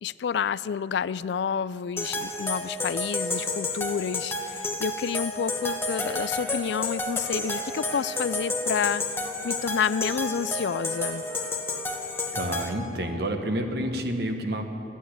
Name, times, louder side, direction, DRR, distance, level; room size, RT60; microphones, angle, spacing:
voice 1, 0.0-9.0 9.4-11.2, left 7 dB, 70° left, 18 dB, 0.3 m, -29 dB
sound 1, 2.0-12.7, left 2 dB, 15° left, 1.0 m, -31 dB
Wind instrument woodwind instrument, 5.4-8.5 8.8-12.2, left 1 dB, 20° right, 1.6 m, -44 dB
voice 2, 12.3-14.6, right 1 dB, 60° right, 5 dB, 1.2 m, -29 dB
14.0 x 9.1 x 10.0 m, 2.9 s
head